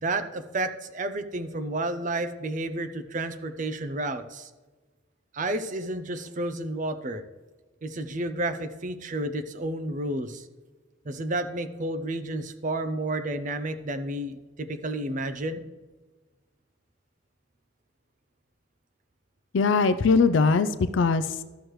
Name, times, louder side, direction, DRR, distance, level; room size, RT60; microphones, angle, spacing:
voice 1, 0.0-4.5 5.3-7.2 7.8-10.5 11.1-15.6, right 2 dB, 40° right, 10 dB, 0.5 m, -31 dB
voice 2, 19.5-21.4, left 4 dB, 60° left, 12 dB, 0.4 m, -21 dB
12.5 x 6.4 x 3.1 m, 1.3 s
head